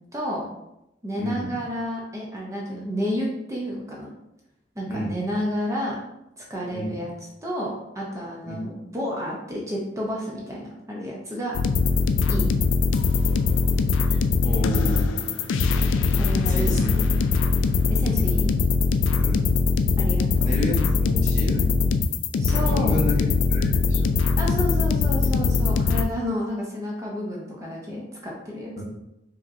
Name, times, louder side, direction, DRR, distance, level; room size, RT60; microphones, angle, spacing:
voice 1, 0.1-0.5 1.0-4.1 4.8-6.0 6.4-7.1 7.4-11.6 12.3-12.5 16.2-17.2 17.9-18.5 20.0-20.5 22.4-23.0 24.4-28.7, equal, 15° right, -3 dB, 0.6 m, -30 dB
voice 2, 1.2-1.5 4.9-5.2 6.7-7.0 8.5-8.6 14.1-15.6 16.4-17.2 19.2-19.5 20.4-21.7 22.5-24.2 28.8-28.9, left 1 dB, 40° left, -4 dB, 1.0 m, -30 dB
sound 1, 11.5-26.0, left 4 dB, 75° left, 0.3 m, -21 dB
4.9 x 2.9 x 2.6 m, 0.87 s
head